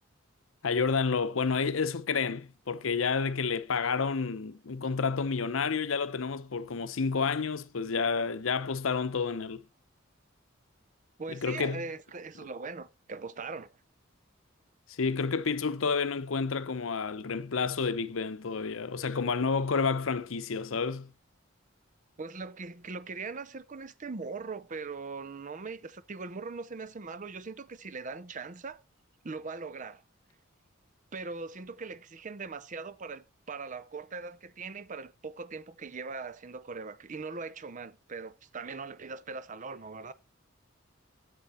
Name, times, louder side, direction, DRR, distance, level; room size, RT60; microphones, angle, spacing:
voice 1, 0.6-9.6 11.3-11.8 15.0-21.1, left 5 dB, 80° left, 0.7 m, -30 dB
voice 2, 11.2-13.7 22.2-28.8 29.2-30.0 31.1-40.1, right 4 dB, 40° right, 0.6 m, -40 dB
9.0 x 7.7 x 4.3 m
head